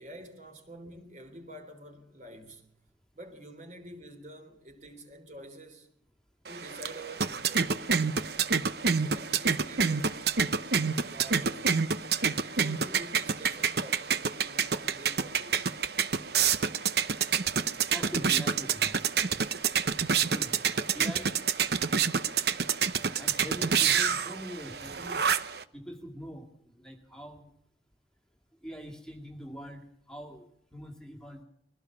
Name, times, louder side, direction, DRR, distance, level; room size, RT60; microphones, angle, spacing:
voice 1, 0.0-2.7 3.1-5.9 6.5-7.8 9.1-10.2 11.0-11.8 12.1-15.7 17.6-17.7, right 1 dB, 40° right, 3.6 m, -48 dB
sound 1, 6.5-25.6, right 6 dB, 60° right, 0.9 m, -28 dB
voice 2, 17.9-19.0 19.3-19.5 20.2-20.6 20.9-21.3 23.0-25.2 25.7-27.5 28.6-31.4, equal, 5° left, 2.0 m, -43 dB
21.5 x 17.0 x 7.3 m
head